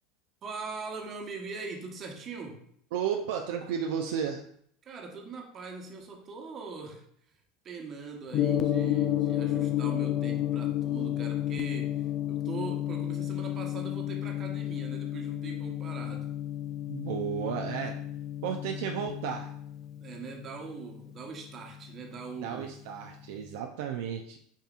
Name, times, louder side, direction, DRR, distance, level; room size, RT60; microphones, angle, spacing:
voice 1, 0.4-2.6 4.8-7.1 7.6-16.3 20.0-22.7, right 4 dB, 40° right, 2 dB, 1.0 m, -41 dB
voice 2, 2.9-4.4 16.9-18.0 18.4-19.5 22.4-24.4, right 8 dB, 75° right, 3 dB, 0.4 m, -33 dB
Gong, 8.3-22.5, left 12 dB, 45° left, 0.3 m, -32 dB
7.1 x 2.7 x 2.4 m, 0.65 s
supercardioid pair, 105°, 0 cm